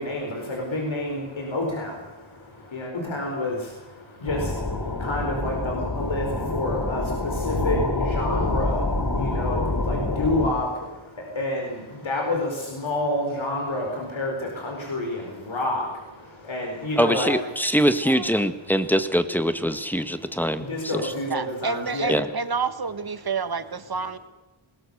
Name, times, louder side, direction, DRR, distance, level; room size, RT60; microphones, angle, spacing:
voice 1, 0.0-17.3 20.0-22.1, left 1 dB, 70° left, 0 dB, 4.9 m, -29 dB
sound 1, 4.3-10.5, left 2 dB, 45° left, 3.4 m, -26 dB
voice 2, 17.0-20.7 20.9-21.1 22.1-22.3, equal, 5° left, 10 dB, 1.6 m, -23 dB
voice 3, 21.3-24.2, right 5 dB, 50° right, 12 dB, 1.6 m, -29 dB
21.5 x 18.5 x 6.7 m, 1.1 s
cardioid pair, 50°, 48 cm